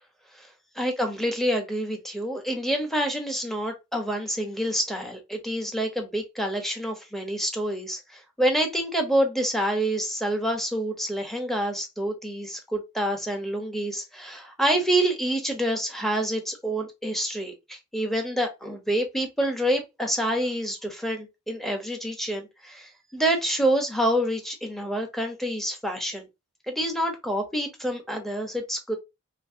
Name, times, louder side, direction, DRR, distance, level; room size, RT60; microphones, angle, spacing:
voice 1, 0.8-26.3 26.7-29.0, right 1 dB, ahead, 1.1 m, -27 dB
3.1 x 2.8 x 2.8 m
wide cardioid pair, 60°, 32 cm